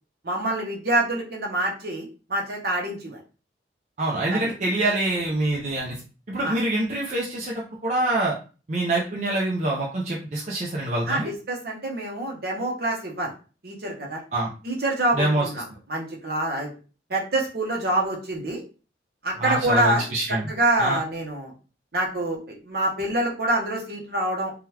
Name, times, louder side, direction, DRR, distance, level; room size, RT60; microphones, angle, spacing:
voice 1, 0.2-3.2 4.3-4.5 6.4-6.6 11.1-13.3 13.6-14.2 14.6-16.7 17.1-18.6 19.2-21.5 21.9-24.5, right 1 dB, 55° right, -1 dB, 0.9 m, -26 dB
voice 2, 4.0-6.0 6.3-8.4 8.7-11.3 14.3-14.5 15.1-15.5 19.4-20.5 20.8-21.0, right 2 dB, 40° right, -4 dB, 0.6 m, -25 dB
3.7 x 2.3 x 2.8 m, 0.35 s
head